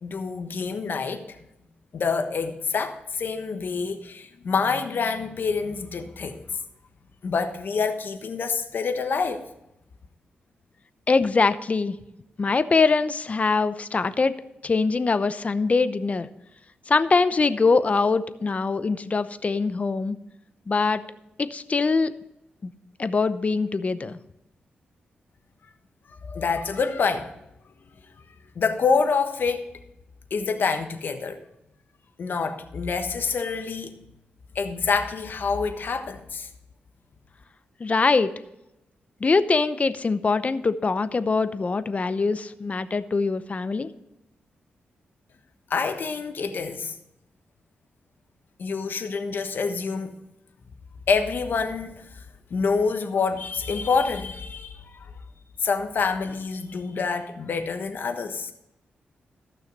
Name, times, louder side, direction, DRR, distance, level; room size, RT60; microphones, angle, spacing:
voice 1, 0.0-1.4 1.9-6.4 7.2-9.5 26.2-27.3 28.5-29.7 30.3-31.4 32.2-33.9 34.5-36.5 45.7-47.0 48.6-50.1 51.1-52.1 52.5-55.1 55.6-58.5, left 5 dB, 65° left, 7 dB, 1.3 m, -27 dB
voice 2, 11.1-12.0 12.4-14.3 14.6-16.3 16.9-20.2 20.7-21.0 21.4-22.1 22.6-22.7 23.0-24.1 37.8-38.3 39.2-43.9, left 4 dB, 40° left, 13 dB, 0.7 m, -23 dB
14.5 x 6.4 x 5.4 m, 0.86 s
cardioid pair, 75°, 4 cm